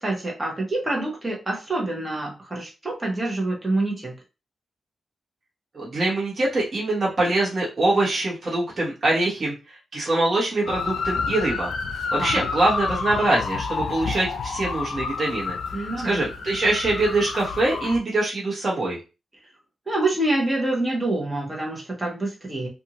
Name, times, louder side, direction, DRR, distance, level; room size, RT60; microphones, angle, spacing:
voice 1, 0.0-4.1 12.2-12.5 15.7-16.2 19.9-22.7, right 2 dB, 20° right, -1 dB, 1.0 m, -26 dB
voice 2, 5.7-11.7 12.1-15.6 16.0-19.0, right 2 dB, 40° right, -6 dB, 1.1 m, -24 dB
sound 1, 10.7-18.0, left 5 dB, 75° left, 0.4 m, -29 dB
2.6 x 2.5 x 2.9 m, 0.30 s
wide cardioid pair, 145°, 0 cm